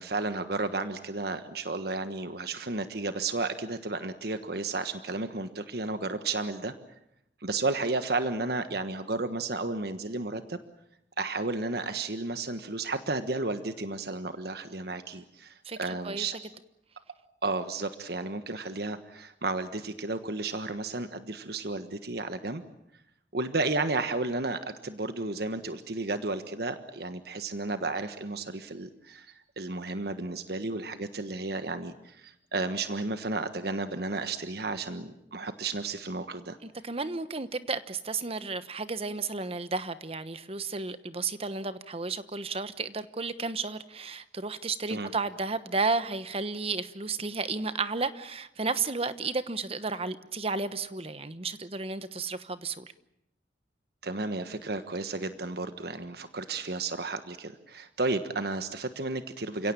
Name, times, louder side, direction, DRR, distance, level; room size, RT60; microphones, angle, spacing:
voice 1, 0.0-6.7 7.4-10.6 11.2-16.4 17.4-22.6 23.3-36.6 44.9-45.1 54.0-59.7, right 3 dB, 60° right, 1.4 m, -33 dB
voice 2, 15.6-16.3 36.6-52.9, right 4 dB, 35° right, 1.1 m, -33 dB
29.5 x 17.0 x 8.9 m
head